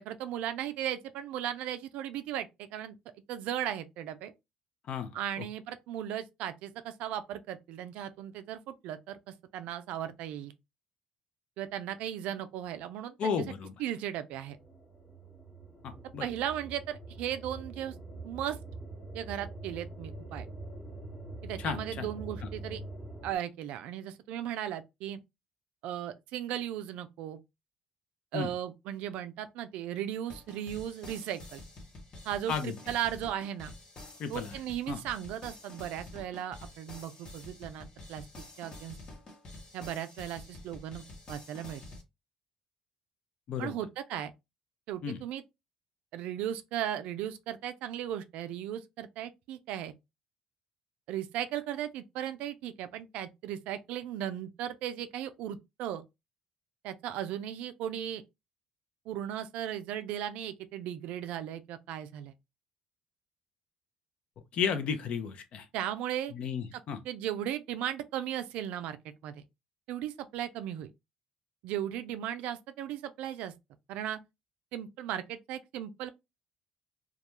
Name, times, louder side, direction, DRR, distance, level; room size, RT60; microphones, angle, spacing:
voice 1, 0.0-3.0 3.3-4.3 5.1-10.5 11.6-13.5 13.8-14.6 16.2-17.9 18.2-18.6 19.1-20.5 21.4-22.8 23.2-25.2 25.8-27.4 28.3-31.6 32.3-33.7 34.3-38.3 38.6-39.0 39.7-41.8 43.6-44.3 44.9-45.4 46.1-49.9 51.1-56.0 56.8-58.2 59.1-62.3 65.7-66.3 66.7-69.4 69.9-70.9 71.6-73.5 73.9-74.2 74.7-76.1, right 11 dB, 75° right, 0.3 m, -36 dB
voice 2, 4.9-5.4 13.2-13.7 15.8-16.3 21.6-22.1 28.3-28.5 32.5-32.7 34.2-34.5 34.9-35.0 43.5-43.7 45.0-45.2 64.5-65.7 66.3-67.0, left 6 dB, 60° left, 0.5 m, -33 dB
sound 1, 14.4-23.4, right 2 dB, 5° left, 0.9 m, -44 dB
sound 2, 30.3-42.0, left 2 dB, 40° left, 0.9 m, -48 dB
2.3 x 2.1 x 2.9 m
supercardioid pair, 75°, 2 cm